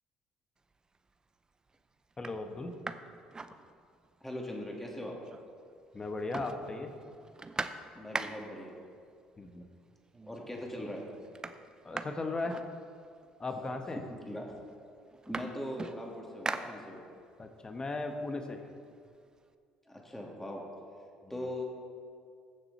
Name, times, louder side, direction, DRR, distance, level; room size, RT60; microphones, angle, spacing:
sound 1, 0.7-1.2 1.7-1.8 2.1-4.2 4.5-4.6 4.9-5.7 6.0-8.7 9.6-9.7 10.1-10.6 10.9-13.3 14.1-14.2 14.5-17.3 17.7-19.5, right 3 dB, 25° right, 0.6 m, -42 dB
voice 1, 2.2-2.7 5.9-6.9 9.4-9.7 11.8-12.6 13.4-14.0 17.4-18.6, left 3 dB, 25° left, 5 dB, 1.2 m, -37 dB
voice 2, 4.2-5.1 7.9-8.8 10.2-11.0 13.5-13.6 13.9-14.6 15.3-17.0 19.8-20.6 21.3-21.6, left 1 dB, 10° left, -2 dB, 2.6 m, -40 dB
15.0 x 6.9 x 4.3 m, 2.3 s
supercardioid pair, 70°, 3 cm